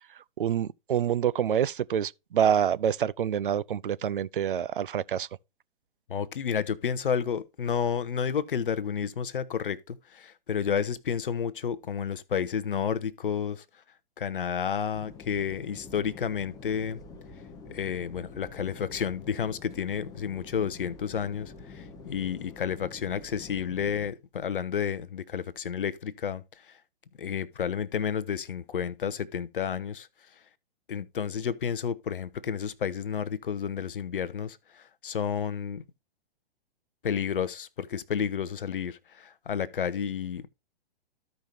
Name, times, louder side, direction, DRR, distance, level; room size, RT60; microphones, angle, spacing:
voice 1, 0.4-5.3, right 9 dB, 60° right, 0.5 m, -27 dB
voice 2, 6.1-13.6 14.2-17.0 17.7-26.8 27.2-30.1 30.9-35.8 37.0-40.5, left 7 dB, 60° left, 0.8 m, -31 dB
sound 1, 14.9-24.1, left 4 dB, 10° left, 0.8 m, -47 dB
14.0 x 5.3 x 2.7 m
figure-of-eight pair, 120°, 30 cm